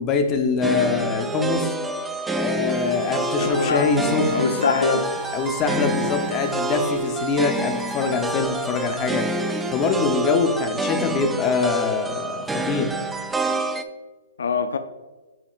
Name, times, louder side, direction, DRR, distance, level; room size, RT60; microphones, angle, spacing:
voice 1, 0.0-1.7 2.3-5.0 5.3-13.0, left 5 dB, 25° left, 5 dB, 0.8 m, -24 dB
sound 1, 0.6-13.8, right 2 dB, 5° right, 0.3 m, -27 dB
Water tap faucet, 2.7-11.2, right 1 dB, 85° right, 2.1 m, -44 dB
voice 2, 3.4-4.0 4.3-5.1 14.4-14.8, left 5 dB, 75° left, 10 dB, 0.4 m, -23 dB
Alarm, 3.5-7.0, right 11 dB, 65° right, 0.8 m, -41 dB
8.6 x 4.8 x 2.5 m, 1.2 s
hypercardioid pair, 140°, 0 cm